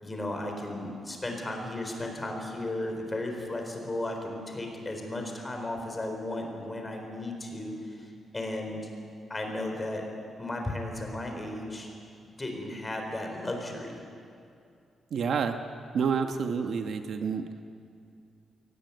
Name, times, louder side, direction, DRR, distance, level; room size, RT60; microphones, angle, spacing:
voice 1, 0.0-8.8 9.3-10.1 10.4-11.9 12.4-14.0, left 1 dB, 15° left, 3 dB, 4.3 m, -35 dB
voice 2, 15.1-15.6 15.9-17.4, right 6 dB, 55° right, 6 dB, 1.2 m, -28 dB
23.0 x 19.0 x 9.6 m, 2.5 s
wide cardioid pair, 155°, 0 cm